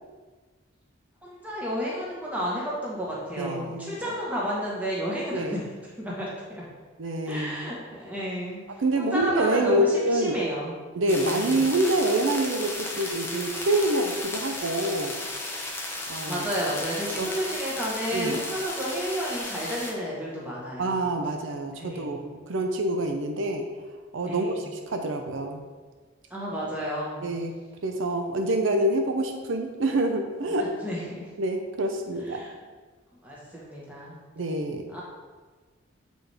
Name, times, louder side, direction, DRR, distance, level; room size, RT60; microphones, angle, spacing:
voice 1, 1.2-5.6 6.0-6.6 7.2-10.7 11.3-11.5 16.3-21.0 21.8-22.2 24.3-24.7 26.3-27.2 30.8-31.3 32.2-32.5 33.2-34.2 34.9-35.0, equal, 10° right, -6 dB, 1.3 m, -32 dB
voice 2, 3.4-4.1 5.3-5.6 7.0-7.7 8.8-10.4 10.9-15.1 16.1-16.5 17.2-17.3 18.1-18.4 20.8-23.6 24.1-25.6 27.2-27.6 27.8-30.7 31.4-32.4 34.4-35.0, right 1 dB, 75° right, 4 dB, 0.6 m, -26 dB
sound 1, 11.1-19.9, left 2 dB, 10° left, 0.6 m, -34 dB
8.0 x 4.1 x 3.4 m, 1.4 s
head